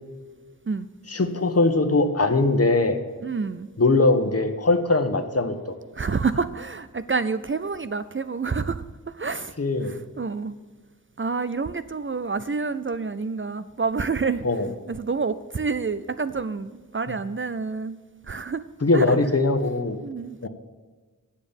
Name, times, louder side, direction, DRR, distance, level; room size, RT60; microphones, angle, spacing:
voice 1, 1.1-3.0 3.8-5.7 9.6-10.0 14.4-14.7 18.8-20.0 20.4-20.5, left 2 dB, 45° left, 7 dB, 1.1 m, -21 dB
voice 2, 3.2-3.7 6.0-8.8 9.2-9.5 9.9-10.6 11.2-14.4 14.9-18.0 18.3-18.6 18.9-19.2 20.0-20.4, right 4 dB, 40° right, 13 dB, 0.4 m, -28 dB
10.0 x 7.2 x 7.1 m, 1.4 s
wide cardioid pair, 70°, 33 cm